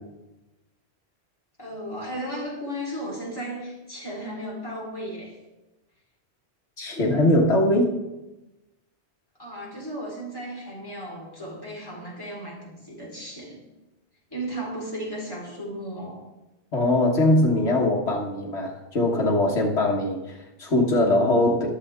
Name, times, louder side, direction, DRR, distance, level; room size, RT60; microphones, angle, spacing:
voice 1, 1.6-5.4 9.4-13.6 14.3-16.2, equal, 20° left, -5 dB, 4.2 m, -35 dB
voice 2, 6.8-7.9 16.7-21.7, left 1 dB, 80° left, -2 dB, 1.9 m, -21 dB
13.5 x 11.5 x 3.7 m, 1.0 s
omnidirectional pair, 1.1 m